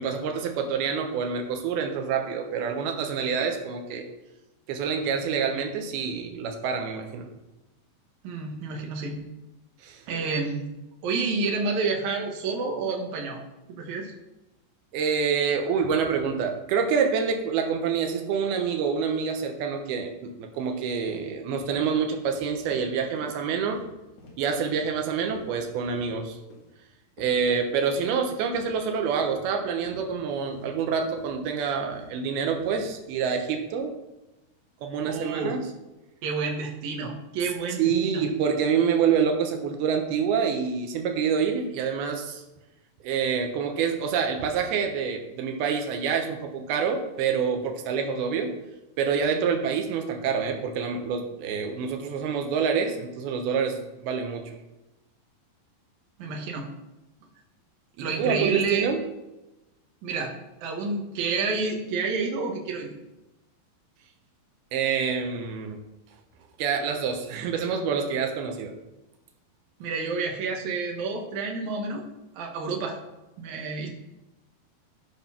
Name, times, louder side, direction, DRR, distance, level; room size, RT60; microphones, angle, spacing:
voice 1, 0.0-4.1 4.7-7.3 9.8-10.0 14.9-23.8 24.4-26.4 27.2-34.0 34.8-35.6 37.8-42.4 43.0-48.5 49.0-54.4 58.0-59.0 64.7-65.8 66.6-68.7, right 6 dB, 85° right, 4 dB, 3.0 m, -27 dB
voice 2, 8.2-9.2 10.1-10.6 11.0-13.4 13.8-14.1 35.0-35.5 36.2-38.2 56.2-56.7 58.0-58.9 60.0-62.9 69.8-72.0 72.4-73.0 73.4-73.9, right 4 dB, 60° right, 1 dB, 2.4 m, -29 dB
sound 1, 21.1-21.2 21.6-21.8 22.1-22.3 22.6-22.8 23.2-23.3 23.7-23.9 24.2-24.3 24.7-24.9 25.3-25.4 25.8-26.0 26.5-26.7 27.2-27.3 27.9-28.1 28.5-28.7 29.2-29.4 29.9-30.0 30.5-30.7 31.2-31.4 31.9-32.1 32.6-32.8 33.2-33.4, left 3 dB, 60° left, 3.6 m, -47 dB
13.0 x 5.4 x 5.9 m, 1.0 s
omnidirectional pair, 4.4 m